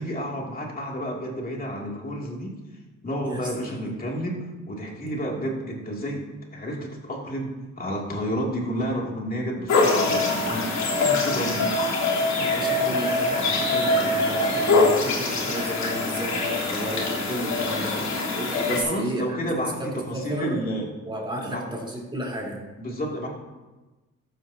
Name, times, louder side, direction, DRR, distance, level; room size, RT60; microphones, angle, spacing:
voice 1, 0.0-2.5 3.0-6.2 6.5-10.7 10.9-11.9 18.7-20.9 21.4-21.6 22.8-23.3, equal, 30° left, -2 dB, 2.8 m, -30 dB
voice 2, 3.2-3.8 12.3-17.9 18.3-19.4 20.1-20.6 21.0-22.6, right 1 dB, 15° right, -3 dB, 3.9 m, -32 dB
sound 1, 9.7-18.8, left 3 dB, 65° left, 3.2 m, -23 dB
14.5 x 12.0 x 2.9 m, 1.1 s
cardioid pair, 90°, 30 cm